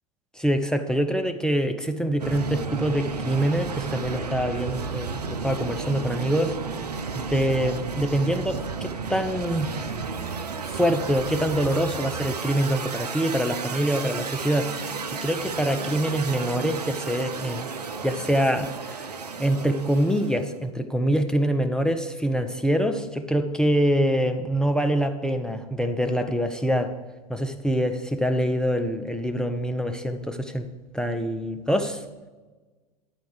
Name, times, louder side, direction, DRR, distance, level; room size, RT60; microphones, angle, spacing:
voice 1, 0.4-6.6 7.2-9.8 10.7-17.7 18.0-19.1 19.4-27.0 27.3-30.7 30.9-32.0, equal, 5° left, 7 dB, 0.4 m, -25 dB
sound 1, 2.2-20.5, right 5 dB, 80° right, 0.5 m, -33 dB
10.0 x 4.4 x 6.6 m, 1.3 s
figure-of-eight pair, 85°, 20 cm